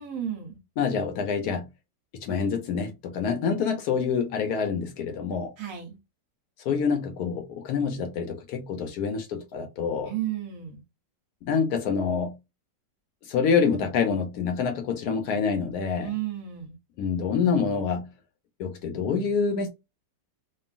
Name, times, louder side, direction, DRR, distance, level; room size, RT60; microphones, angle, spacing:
voice 1, 0.0-0.6 5.6-6.0 10.0-10.8 16.0-16.8, right 11 dB, 60° right, 1.1 m, -33 dB
voice 2, 0.8-1.7 2.2-5.5 6.6-10.1 11.4-12.4 13.2-16.1 17.0-18.1 18.6-19.7, left 6 dB, 70° left, 1.0 m, -26 dB
3.0 x 2.4 x 2.4 m
omnidirectional pair, 1.9 m